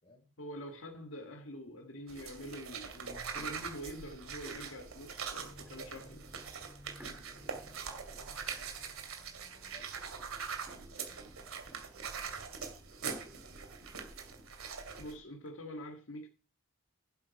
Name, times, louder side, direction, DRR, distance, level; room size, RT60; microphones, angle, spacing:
voice 1, 0.4-6.3 15.0-16.3, equal, 75° left, 1.7 m, -45 dB
sound 1, 0.6-1.1 1.7-1.8 2.6-2.9 3.1-5.0 5.6-5.7 6.1-6.2 7.0-8.8 9.2-9.3 9.8-9.9 10.5-12.1 12.6-12.7 13.1-13.2 13.5-13.6 13.9-14.0 14.9-15.5, right 2 dB, 10° right, 2.0 m, -59 dB
sound 2, 2.1-15.2, right 6 dB, 90° right, 2.4 m, -43 dB
sound 3, 5.3-10.0, left 1 dB, 15° left, 1.3 m, -59 dB
voice 2, 7.0-8.8 9.1-12.8, left 1 dB, 30° left, 3.9 m, -62 dB
10.0 x 8.3 x 5.7 m
head